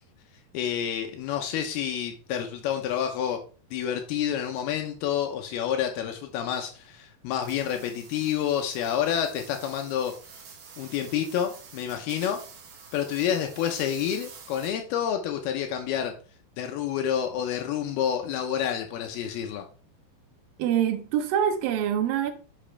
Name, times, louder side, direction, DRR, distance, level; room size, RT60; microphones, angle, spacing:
voice 1, 0.5-3.4 3.7-10.1 10.8-12.4 12.9-16.1 16.6-19.6, left 9 dB, 80° left, 2.8 m, -29 dB
sound 1, 7.4-15.0, right 6 dB, 55° right, 2.5 m, -48 dB
voice 2, 20.6-22.3, right 9 dB, 75° right, 2.7 m, -25 dB
10.0 x 6.5 x 3.3 m
omnidirectional pair, 4.5 m